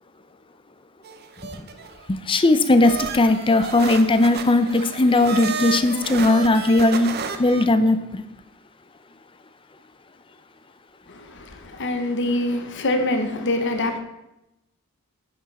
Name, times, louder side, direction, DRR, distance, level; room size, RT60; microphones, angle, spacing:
sound 1, 1.0-2.0 2.8-7.6, right 6 dB, 45° right, 0.7 m, -32 dB
voice 1, 2.1-7.1 7.4-8.2, left 2 dB, 25° left, 0.5 m, -18 dB
voice 2, 11.1-14.0, left 1 dB, 55° left, 1.0 m, -25 dB
9.2 x 6.0 x 4.2 m
head